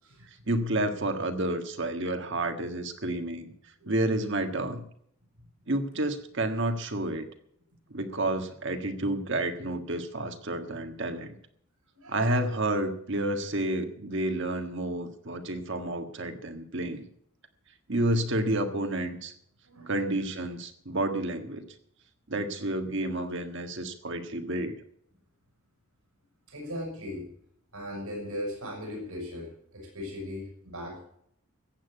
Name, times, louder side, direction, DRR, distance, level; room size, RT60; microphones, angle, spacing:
voice 1, 0.5-3.5 3.8-4.8 5.7-7.3 7.9-11.3 12.1-17.1 17.9-19.3 19.9-21.6 22.3-24.8, right 1 dB, 55° right, 7 dB, 1.6 m, -30 dB
voice 2, 11.9-12.4 19.6-19.9 26.5-27.3 27.7-31.0, left 1 dB, 80° right, 0 dB, 6.0 m, -38 dB
15.0 x 9.0 x 8.3 m, 0.68 s
head